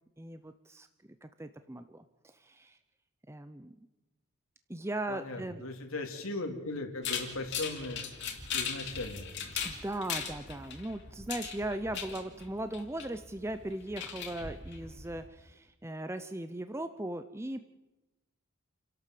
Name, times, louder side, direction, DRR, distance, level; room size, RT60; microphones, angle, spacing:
voice 1, 0.2-0.9 1.2-2.0 2.4-2.8 3.3-3.7 4.7-5.6 9.6-17.6, right 1 dB, 10° right, 9 dB, 0.6 m, -38 dB
voice 2, 5.1-8.0 8.3-9.3, left 2 dB, 75° left, 4 dB, 3.0 m, -38 dB
sound 1, 7.0-15.3, left 7 dB, 55° left, 2.7 m, -39 dB
28.5 x 12.0 x 7.6 m, 1.0 s
head